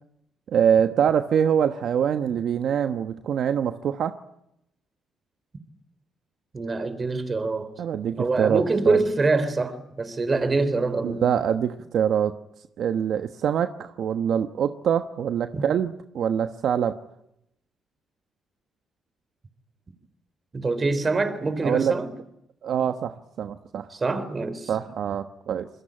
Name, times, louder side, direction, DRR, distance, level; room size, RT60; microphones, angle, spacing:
voice 1, 0.5-4.1 7.8-9.0 11.0-12.4 12.8-17.0 21.6-21.9 22.6-23.9 24.7-25.7, right 8 dB, 65° right, 1.2 m, -24 dB
voice 2, 6.5-7.7 8.2-11.2 15.5-15.6 20.5-22.1 23.9-24.7, right 3 dB, 30° right, 3.8 m, -25 dB
27.0 x 22.0 x 8.9 m
cardioid pair, 90°, 0 cm